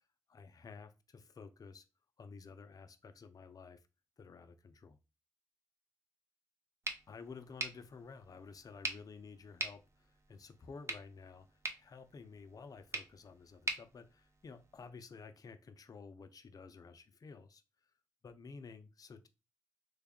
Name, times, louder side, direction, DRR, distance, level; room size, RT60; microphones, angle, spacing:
voice 1, 0.3-1.8 2.2-3.8 4.2-5.0 7.1-17.6 18.2-19.3, left 5 dB, 55° left, 9 dB, 0.5 m, -52 dB
sound 1, 6.8-14.9, right 2 dB, 40° right, 0.8 m, -45 dB
3.3 x 2.3 x 3.6 m, 0.29 s
supercardioid pair, 45°, 7 cm